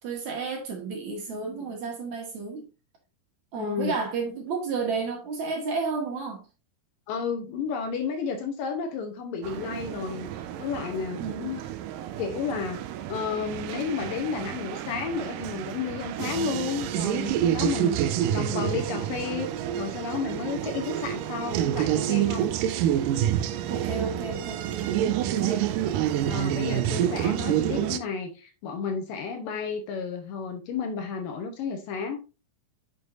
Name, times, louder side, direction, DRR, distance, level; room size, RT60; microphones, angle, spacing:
voice 1, 0.0-2.7 3.5-6.5 11.2-11.6 23.7-25.6, right 4 dB, 55° right, 2.6 m, -32 dB
voice 2, 3.6-4.0 7.1-11.6 12.2-12.8 13.1-22.5 26.3-32.2, left 5 dB, 70° left, 2.4 m, -32 dB
sound 1, 9.4-28.0, right 11 dB, 85° right, 2.0 m, -28 dB
9.2 x 6.4 x 2.6 m
omnidirectional pair, 4.5 m